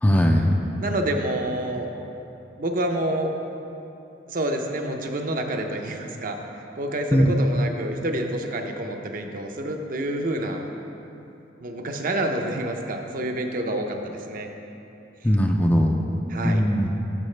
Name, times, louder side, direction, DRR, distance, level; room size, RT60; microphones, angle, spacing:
voice 1, 0.0-0.5 7.1-7.3 15.2-16.1 16.4-16.9, equal, 10° left, 2 dB, 0.3 m, -19 dB
voice 2, 0.8-1.9 2.6-3.3 4.3-6.4 6.7-10.7 11.6-14.5 16.3-16.6, right 1 dB, 45° right, 4 dB, 0.6 m, -28 dB
13.0 x 5.7 x 3.2 m, 2.9 s
head